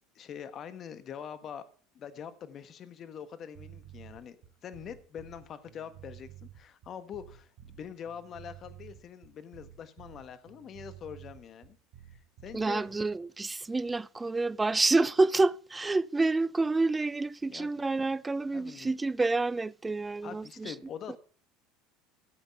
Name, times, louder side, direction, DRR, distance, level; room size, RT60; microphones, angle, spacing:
voice 1, 0.1-1.7 1.9-4.4 4.6-11.8 12.1-12.9 17.5-17.8 18.5-18.9 20.2-21.2, left 8 dB, 45° left, 1.4 m, -44 dB
sound 1, 3.5-13.2, right 11 dB, 65° right, 2.3 m, -51 dB
voice 2, 12.5-20.7 21.1-21.2, right 3 dB, 15° right, 0.5 m, -28 dB
14.5 x 8.1 x 4.8 m
hypercardioid pair, 85°, 0 cm